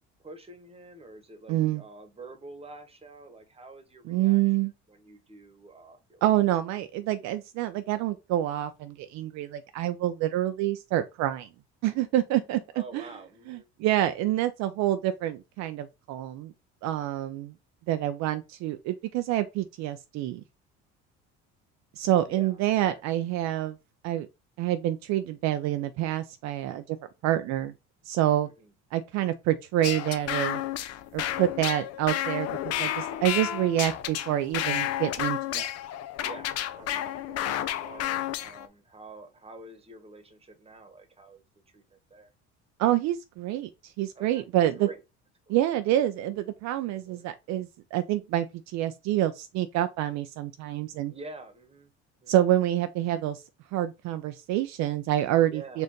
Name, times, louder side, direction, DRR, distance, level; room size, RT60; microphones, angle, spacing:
voice 1, 0.2-4.6 4.9-6.2 12.7-13.7 22.2-23.0 28.4-28.7 32.4-33.3 36.2-41.4 41.7-42.3 44.1-45.0 45.5-45.6 46.9-47.3 51.1-51.9 52.2-52.5 55.5-55.8, right 3 dB, 20° right, 1.1 m, -48 dB
voice 2, 1.5-1.8 4.1-4.7 6.2-11.5 11.8-13.1 13.5-16.5 16.8-17.5 17.9-20.4 22.0-23.8 24.0-24.3 24.6-27.0 27.2-27.7 28.1-28.5 28.9-30.6 31.1-35.7 42.8-44.9 45.5-51.1 52.3-53.4 53.7-55.8, right 13 dB, 65° right, 0.4 m, -27 dB
sound 1, 29.8-38.7, left 12 dB, 55° left, 0.5 m, -31 dB
4.3 x 2.5 x 3.0 m
supercardioid pair, 85°, 30 cm